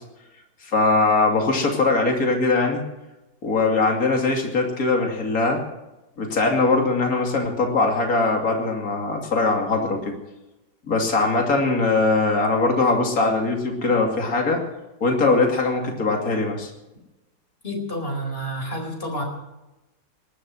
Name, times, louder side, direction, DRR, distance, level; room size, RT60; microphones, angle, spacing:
voice 1, 0.6-2.8 3.4-5.6 6.2-10.2 10.9-14.6 15.0-16.7, left 3 dB, 50° left, 2 dB, 3.0 m, -21 dB
voice 2, 17.6-19.2, equal, 30° left, 2 dB, 4.7 m, -29 dB
19.5 x 11.5 x 6.1 m, 1.0 s
omnidirectional pair, 2.1 m